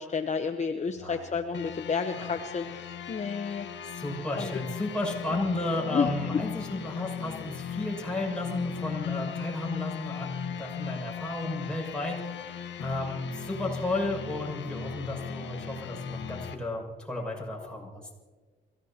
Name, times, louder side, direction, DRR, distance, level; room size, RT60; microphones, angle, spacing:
voice 1, 0.0-3.7 4.4-4.6 5.9-6.1, left 5 dB, 35° left, 6 dB, 0.9 m, -31 dB
voice 2, 0.9-1.2 2.2-2.3 3.9-18.2, left 2 dB, 5° left, -3 dB, 6.8 m, -33 dB
sound 1, 1.5-16.6, left 8 dB, 65° left, 1.4 m, -37 dB
28.5 x 16.5 x 2.9 m, 1.4 s
cardioid pair, 90°, 20 cm